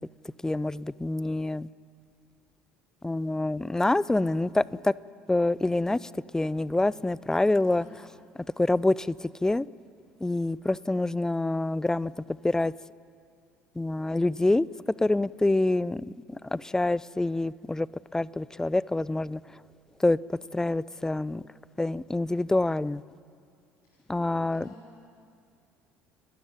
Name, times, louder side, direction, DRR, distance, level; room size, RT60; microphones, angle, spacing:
voice 1, 0.4-1.7 3.0-4.9 5.3-7.9 8.4-9.7 10.2-12.7 13.8-14.7 15.0-17.9 18.1-19.6 20.0-21.4 21.8-23.0 24.1-24.7, left 2 dB, 10° left, 0.5 m, -26 dB
voice 2, 7.5-8.0 23.8-25.0, left 2 dB, 55° left, 5.2 m, -53 dB
29.5 x 13.0 x 9.6 m
figure-of-eight pair, 60°, 6 cm